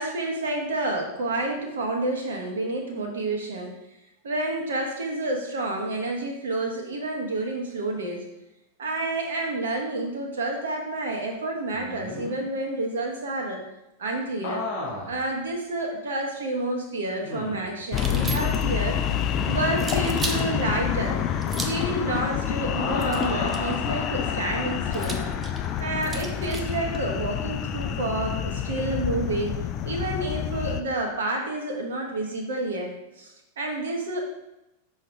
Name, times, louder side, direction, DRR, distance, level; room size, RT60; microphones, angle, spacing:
voice 1, 0.0-3.8 4.2-8.2 8.8-13.6 14.0-14.6 15.1-19.0 19.5-21.2 21.7-25.2 25.8-32.9 33.2-34.2, right 2 dB, 65° right, 1 dB, 1.3 m, -29 dB
sound 1, 11.7-12.4 14.4-15.2 15.8-15.9 17.2-17.8 20.1-20.8 22.6-25.5 27.7-28.0, left 3 dB, 50° left, 1.5 m, -35 dB
sound 2, 17.9-30.8, left 9 dB, 35° left, 0.4 m, -28 dB
sound 3, 17.9-18.8 19.8-20.5 21.4-21.9 23.0-23.8 24.9-26.7, right 3 dB, 20° right, 0.8 m, -35 dB
6.2 x 5.9 x 3.3 m, 0.90 s
figure-of-eight pair, 90°, 0 cm